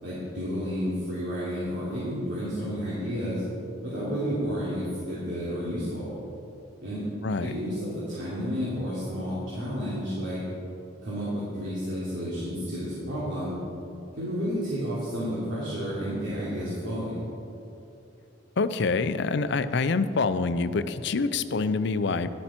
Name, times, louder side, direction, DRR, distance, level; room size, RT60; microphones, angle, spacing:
voice 1, 0.0-3.4 3.8-6.2 6.8-7.1 7.4-10.4 11.0-13.5 14.2-17.2, equal, 65° right, -10 dB, 3.1 m, -31 dB
voice 2, 7.2-7.5 18.6-22.3, left 4 dB, 65° left, 12 dB, 0.5 m, -26 dB
11.5 x 11.5 x 4.4 m, 2.8 s
head